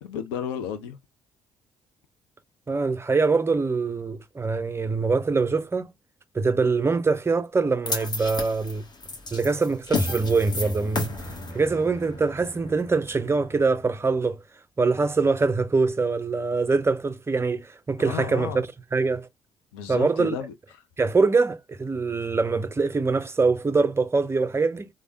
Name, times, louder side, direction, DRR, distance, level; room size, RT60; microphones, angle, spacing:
voice 1, 0.0-1.0 18.0-18.6 19.7-20.8, left 8 dB, 75° left, 0.5 m, -33 dB
voice 2, 2.7-5.9 6.3-8.8 9.3-11.1 11.5-14.4 14.8-18.7 18.9-19.3 19.9-20.4 21.0-24.9, right 4 dB, 20° right, 0.4 m, -23 dB
sound 1, 7.9-14.1, left 2 dB, 30° left, 1.1 m, -33 dB
3.3 x 2.1 x 2.6 m
figure-of-eight pair, 50°, 14 cm